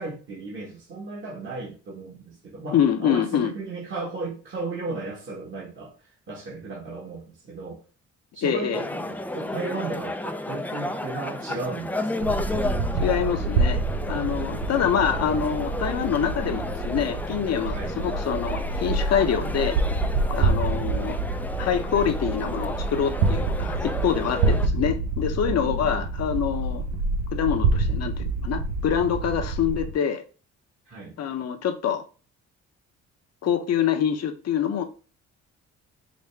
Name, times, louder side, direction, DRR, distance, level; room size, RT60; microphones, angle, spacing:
voice 1, 0.0-5.9 6.3-7.8 8.3-12.3 17.7-17.9 25.5-26.1 30.9-31.2, right 3 dB, 40° right, 1.2 m, -35 dB
voice 2, 2.7-3.5 8.4-8.8 13.0-13.8 14.1-19.8 20.3-21.2 21.6-26.8 27.3-30.2 31.2-32.0 33.4-34.8, left 8 dB, 55° left, 0.8 m, -25 dB
sound 1, 8.7-24.7, left 1 dB, 5° left, 0.3 m, -33 dB
sound 2, 12.2-29.9, right 3 dB, 80° right, 0.7 m, -27 dB
5.0 x 2.1 x 3.3 m
cardioid pair, 90°, 30 cm